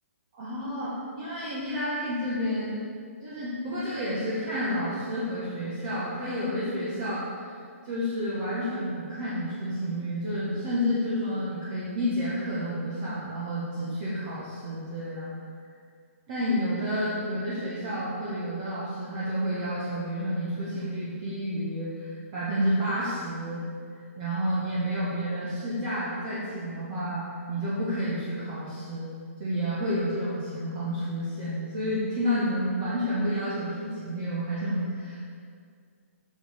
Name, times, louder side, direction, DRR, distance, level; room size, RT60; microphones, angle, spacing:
voice 1, 0.3-2.7 3.2-7.2 7.8-15.3 16.3-23.6 24.2-29.1 29.4-35.2, equal, 30° right, -9 dB, 1.4 m, -30 dB
8.9 x 6.7 x 3.6 m, 2.2 s
hypercardioid pair, 165°, 8 cm